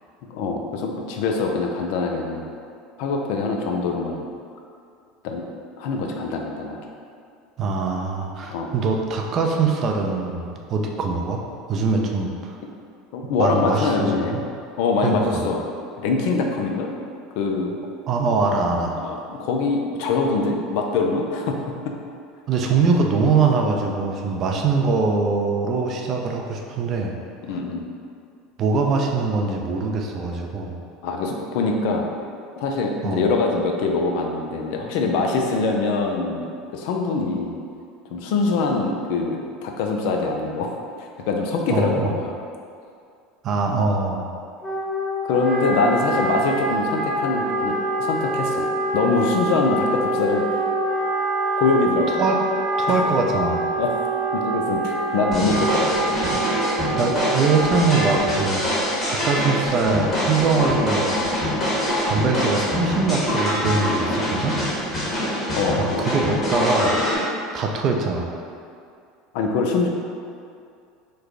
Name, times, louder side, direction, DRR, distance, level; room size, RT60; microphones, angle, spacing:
voice 1, 0.3-2.4 3.0-4.2 5.2-5.4 5.8-6.8 8.5-8.7 13.1-14.4 14.8-15.6 16.0-16.9 17.4-17.7 19.0-21.9 27.5-27.8 31.0-32.1 32.6-36.5 36.7-37.6 38.1-42.3 45.2-48.7 48.9-50.6 51.6-52.1 52.9-53.0 53.8-53.9 54.3-56.2 65.5-66.1 69.3-69.9, left 3 dB, 70° left, 1 dB, 0.4 m, -23 dB
voice 2, 7.6-11.4 11.7-12.6 13.4-14.4 15.0-15.4 18.1-19.0 22.5-27.1 28.6-30.8 33.0-33.2 41.7-42.1 43.4-44.3 52.2-52.4 52.8-53.6 56.5-58.6 59.1-61.2 62.0-64.6 65.8-66.9 67.5-68.3, right 4 dB, 45° right, 1 dB, 0.4 m, -22 dB
Wind instrument woodwind instrument, 44.6-58.7, right 2 dB, 5° left, 0.8 m, -25 dB
sound 1, 55.3-67.2, equal, 30° left, 1.3 m, -24 dB
3.2 x 2.2 x 3.7 m, 2.4 s
hypercardioid pair, 90°, 0 cm